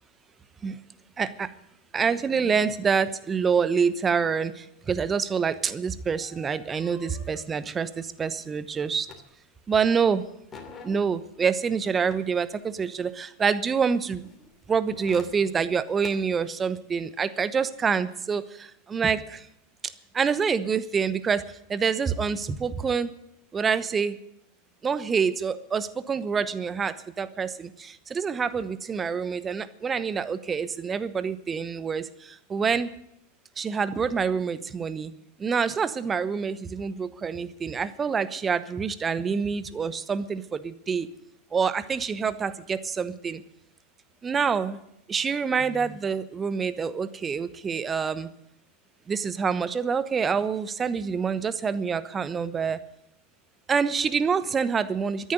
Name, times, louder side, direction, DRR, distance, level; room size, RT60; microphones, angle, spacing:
voice 1, 1.2-1.5 1.9-9.1 9.7-10.2 10.8-14.3 14.7-19.5 20.1-23.1 23.5-24.2 24.8-32.9 33.6-35.1 35.4-41.1 41.5-43.4 44.2-44.8 45.1-48.3 49.1-52.8 53.7-55.3, right 6 dB, 20° right, 15 dB, 1.0 m, -27 dB
sound 1, 5.8-9.7 10.0-13.2 14.2-16.1, left 5 dB, 20° left, 2.8 m, -48 dB
13.5 x 10.5 x 9.3 m, 0.79 s
figure-of-eight pair, 90°, 0 cm